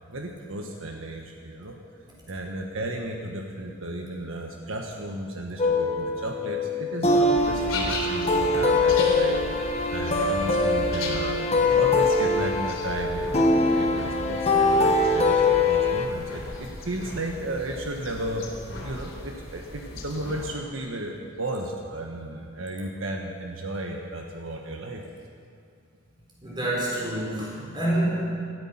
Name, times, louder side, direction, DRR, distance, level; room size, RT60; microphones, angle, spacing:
voice 1, 0.1-1.8 2.3-9.4 9.9-11.4 11.7-18.5 18.8-25.0, right 1 dB, 75° right, 2 dB, 1.4 m, -34 dB
sound 1, 5.6-16.1, left 2 dB, 30° left, 1.4 m, -23 dB
sound 2, 7.3-20.5, left 2 dB, 75° left, 3.3 m, -37 dB
voice 2, 26.4-28.3, right 1 dB, 20° right, -4 dB, 4.7 m, -27 dB
17.5 x 13.5 x 5.8 m, 2.4 s
head